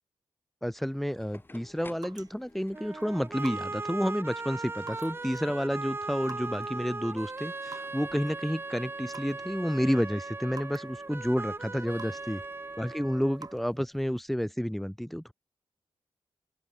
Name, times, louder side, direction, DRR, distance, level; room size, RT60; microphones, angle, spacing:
voice 1, 0.6-12.4 12.8-15.3, equal, ahead, 0.3 m, -30 dB
sound 1, 0.8-13.0, left 2 dB, 25° left, 7.7 m, -55 dB
sound 2, 0.8-14.3, right 5 dB, 45° right, 1.6 m, -53 dB
sound 3, 2.7-13.7, right 3 dB, 25° right, 0.9 m, -38 dB
open air
wide cardioid pair, 120°, 9 cm